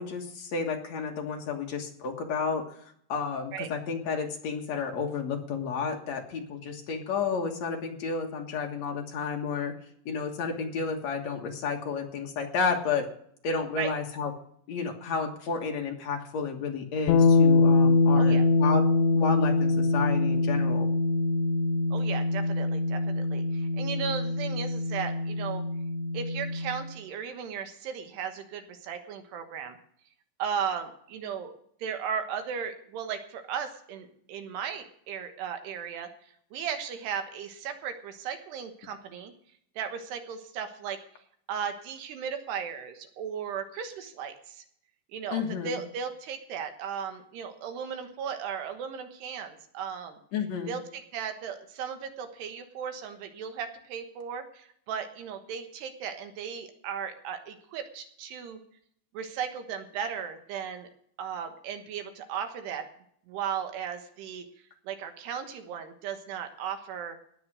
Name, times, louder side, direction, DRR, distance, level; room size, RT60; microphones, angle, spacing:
voice 1, 0.0-2.6 3.1-9.7 10.1-13.1 13.4-14.3 14.7-18.8 19.1-20.9 45.3-45.8 50.3-50.7, left 5 dB, 60° left, 2 dB, 1.9 m, -31 dB
sound 1, 17.1-26.9, left 3 dB, 80° left, 3.7 m, -24 dB
voice 2, 21.9-25.6 26.1-29.8 30.4-31.5 31.8-36.1 36.5-39.3 39.8-41.0 41.5-44.6 45.1-50.2 50.7-58.6 59.1-60.9 61.2-62.9 63.3-64.5 64.8-67.2, right 7 dB, 70° right, 7 dB, 3.2 m, -36 dB
19.0 x 6.7 x 6.3 m, 0.64 s
omnidirectional pair, 5.2 m